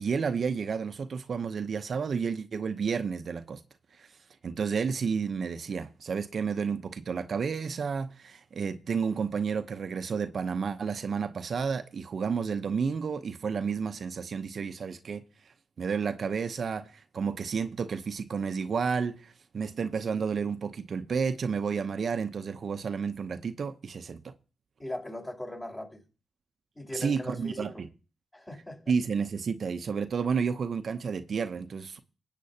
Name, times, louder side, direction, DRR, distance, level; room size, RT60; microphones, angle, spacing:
voice 1, 0.0-3.6 3.9-4.1 4.4-15.2 15.8-24.3 26.9-27.9 28.9-32.0, right 6 dB, 60° right, 0.7 m, -31 dB
voice 2, 24.8-26.0 26.7-27.8 28.3-28.9, left 1 dB, 25° left, 4.5 m, -39 dB
23.5 x 8.3 x 2.8 m
supercardioid pair, 45°, 0 cm